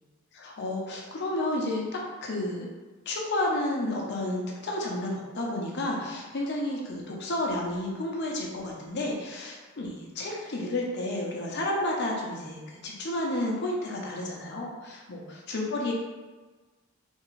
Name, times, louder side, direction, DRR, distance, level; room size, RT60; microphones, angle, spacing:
voice 1, 0.3-1.8 2.2-2.7 3.1-15.9, left 1 dB, 50° left, -2 dB, 0.6 m, -31 dB
3.5 x 2.4 x 3.1 m, 1.3 s
head